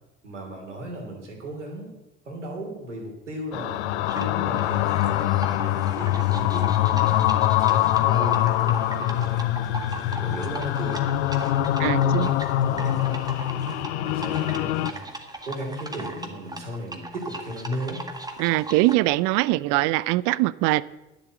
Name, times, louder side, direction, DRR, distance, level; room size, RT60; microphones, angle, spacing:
voice 1, 0.2-1.9 2.2-9.9 10.2-11.0 11.8-13.3 14.0-15.1 15.4-18.0, right 1 dB, 90° right, 2.9 m, -36 dB
sound 1, 3.5-14.9, left 13 dB, 70° left, 0.6 m, -24 dB
sound 2, 4.1-18.9, right 2 dB, 10° right, 1.9 m, -38 dB
voice 2, 11.8-12.3 18.4-20.8, right 19 dB, 60° right, 0.5 m, -22 dB
11.0 x 7.1 x 8.6 m
figure-of-eight pair, 60°, 35 cm